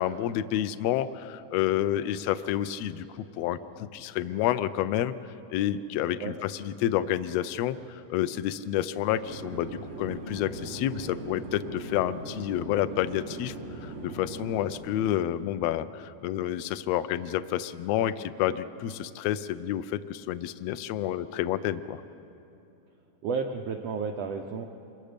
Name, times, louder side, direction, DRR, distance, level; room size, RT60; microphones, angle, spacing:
voice 1, 0.0-5.2 5.5-13.5 13.8-22.0, left 12 dB, 90° left, 12 dB, 1.4 m, -29 dB
Chatter / Fixed-wing aircraft airplane, 9.2-14.7, right 2 dB, 40° right, 4.4 m, -40 dB
voice 2, 23.2-24.7, right 5 dB, 70° right, 3 dB, 1.6 m, -32 dB
27.0 x 23.5 x 5.1 m, 2.8 s
omnidirectional pair, 3.6 m